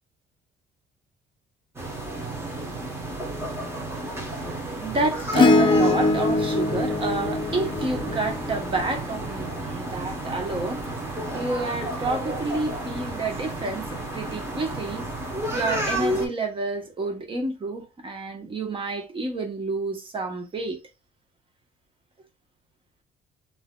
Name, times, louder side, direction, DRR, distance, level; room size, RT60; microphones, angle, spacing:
sound 1, 1.8-16.3, right 1 dB, 15° right, 1.2 m, -32 dB
voice 1, 4.4-15.1 15.5-20.8, right 3 dB, 30° right, 1.1 m, -29 dB
Acoustic guitar / Strum, 5.3-9.9 11.8-11.9, left 3 dB, 30° left, 0.6 m, -23 dB
3.9 x 2.8 x 2.3 m
cardioid pair, 110°, 17 cm